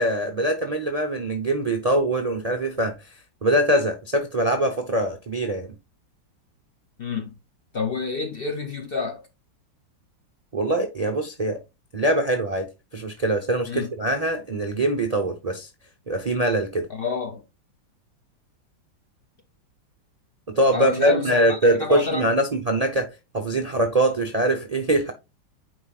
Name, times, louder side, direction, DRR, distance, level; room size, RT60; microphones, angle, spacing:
voice 1, 0.0-3.1 3.4-5.7 10.5-11.6 11.9-15.7 16.1-16.9 20.5-25.1, right 1 dB, 50° right, 0.4 m, -23 dB
voice 2, 7.0-7.3 7.7-9.2 13.7-13.9 16.9-17.4 20.7-22.3, left 5 dB, 75° left, 0.5 m, -29 dB
9.2 x 4.7 x 2.4 m
omnidirectional pair, 2.0 m